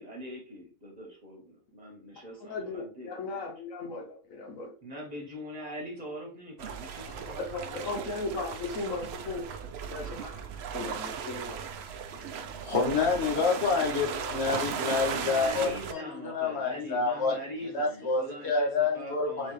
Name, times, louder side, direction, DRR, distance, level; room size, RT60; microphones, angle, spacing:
voice 1, 0.0-3.5 4.8-8.1 14.9-19.5, equal, 30° right, 1.3 m, -42 dB
voice 2, 2.4-4.7 7.0-11.6, left 3 dB, 75° left, 1.2 m, -37 dB
sound 1, 6.6-15.9, right 7 dB, 65° right, 0.7 m, -36 dB
voice 3, 12.2-17.4 17.7-19.5, left 4 dB, 50° left, 1.2 m, -28 dB
4.0 x 4.0 x 3.2 m
omnidirectional pair, 1.4 m